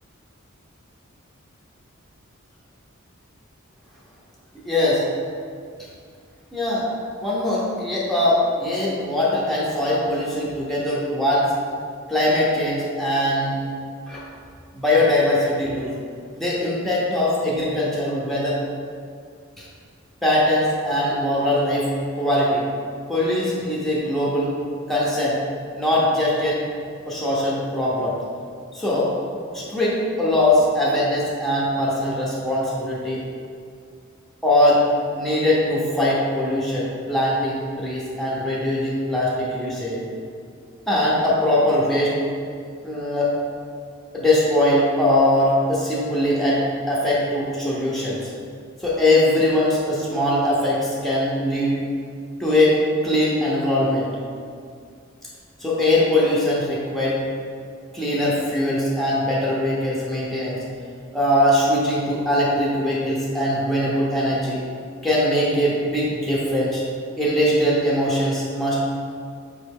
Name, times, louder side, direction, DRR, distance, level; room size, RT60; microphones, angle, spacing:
voice 1, 4.6-5.0 6.5-6.8 7.2-11.5 12.1-13.6 14.1-14.2 14.7-15.9 16.3-18.6 19.6-19.7 20.2-21.9 22.2-22.6 23.1-24.5 24.9-25.4 25.7-26.6 27.1-28.2 28.7-29.1 29.5-33.2 34.4-34.8 35.1-40.0 40.9-42.1 42.8-43.3 44.1-46.6 46.9-48.2 48.8-51.8 52.4-54.1 55.6-57.2 57.9-60.6 61.1-64.6 65.0-66.8 67.2-68.8, left 1 dB, ahead, -6 dB, 0.6 m, -21 dB
4.9 x 3.1 x 3.5 m, 2.2 s
head